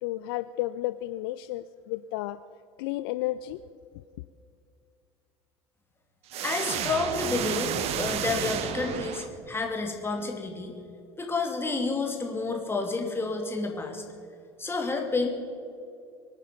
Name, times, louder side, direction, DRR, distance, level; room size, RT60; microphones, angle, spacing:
voice 1, 0.0-2.4 2.8-3.6, left 15 dB, 60° left, 14 dB, 0.4 m, -32 dB
sound 1, 6.3-9.7, right 9 dB, 45° right, 1.0 m, -31 dB
voice 2, 6.4-10.8 11.2-14.0 14.6-15.3, left 3 dB, 15° left, 2 dB, 2.7 m, -30 dB
24.5 x 9.4 x 5.3 m, 2.4 s
figure-of-eight pair, 70°, 15 cm